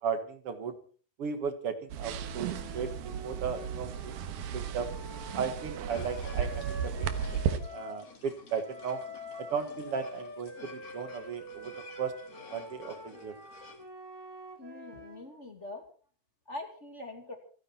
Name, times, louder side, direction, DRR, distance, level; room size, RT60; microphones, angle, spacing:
voice 1, 0.0-0.8 1.2-4.2 4.5-4.9 5.3-7.1 7.5-9.0 9.4-11.7 12.0-12.1 12.5-13.4, right 6 dB, 50° right, 9 dB, 1.9 m, -36 dB
sound 1, 1.9-7.6, right 8 dB, 85° right, 3.0 m, -35 dB
sound 2, 2.0-8.0 8.6-15.3, equal, 10° right, 1.4 m, -46 dB
sound 3, 5.9-13.8, left 4 dB, 45° left, 3.9 m, -52 dB
voice 2, 14.6-15.8 16.5-17.4, left 2 dB, 20° left, 4 dB, 2.3 m, -43 dB
28.0 x 9.8 x 4.4 m, 0.41 s
omnidirectional pair, 4.1 m